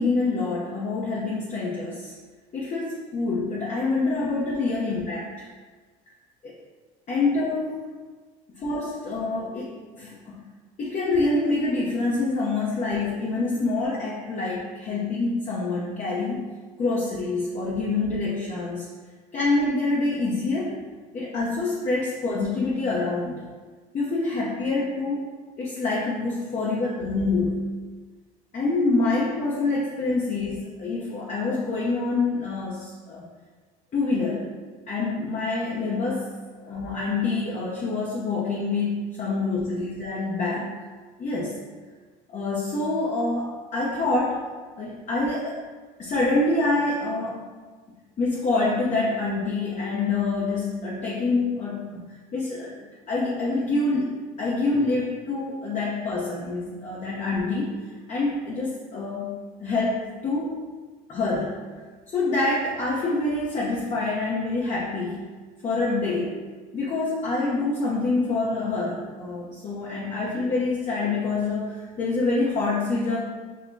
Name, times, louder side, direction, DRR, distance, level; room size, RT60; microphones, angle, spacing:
voice 1, 0.0-2.1 2.5-5.5 6.4-6.6 7.1-7.9 8.6-10.4 10.8-16.4 16.8-18.9 19.3-20.8 21.1-23.5 23.9-25.2 25.6-27.8 28.5-33.2 33.9-34.5 34.9-40.8 41.2-41.6 42.3-44.4 44.8-45.6 46.0-47.4 48.2-52.8 53.1-54.1 54.4-57.7 58.1-60.6 61.1-61.6 62.1-65.3 65.6-66.4 66.7-73.2, left 3 dB, 40° left, -4 dB, 0.7 m, -26 dB
6.2 x 2.1 x 2.6 m, 1.4 s
supercardioid pair, 80°, 19 cm